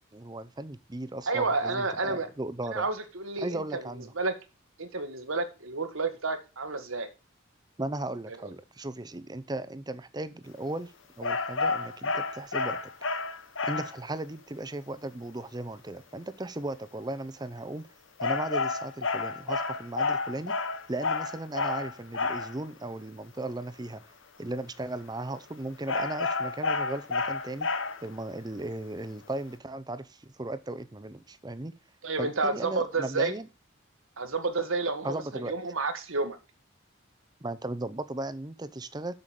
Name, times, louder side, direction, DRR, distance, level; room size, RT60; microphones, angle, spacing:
voice 1, 0.1-2.9 3.4-4.1 7.8-10.9 11.2-12.8 13.6-17.9 18.2-20.5 20.9-24.0 24.4-27.7 28.0-30.0 30.4-31.7 32.2-33.5 35.0-35.5 37.4-39.1, right 2 dB, 20° right, 0.6 m, -36 dB
voice 2, 1.3-2.3 2.7-4.3 4.8-7.1 8.3-8.4 32.0-33.3 34.2-36.4, right 3 dB, 90° right, 1.7 m, -30 dB
sound 1, 11.2-14.0 18.2-22.5 25.9-28.1, left 4 dB, 75° left, 1.2 m, -30 dB
7.9 x 6.9 x 7.5 m
head